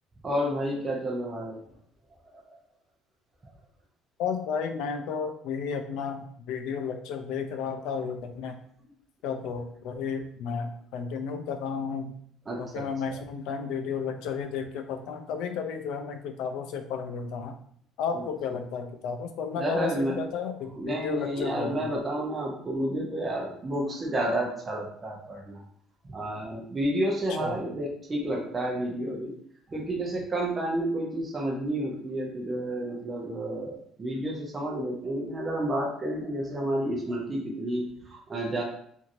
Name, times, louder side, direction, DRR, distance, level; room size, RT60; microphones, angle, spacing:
voice 1, 0.2-1.6 2.5-2.6 12.5-13.2 18.1-18.2 19.5-20.2 20.7-25.6 26.1-29.3 29.7-38.6, right 1 dB, 20° right, -1 dB, 0.7 m, -30 dB
voice 2, 4.2-8.6 9.2-12.2 12.6-17.6 18.0-21.9 27.4-27.5, left 6 dB, 75° left, 6 dB, 0.4 m, -33 dB
3.0 x 2.6 x 2.6 m, 0.64 s
cardioid pair, 155°, 0 cm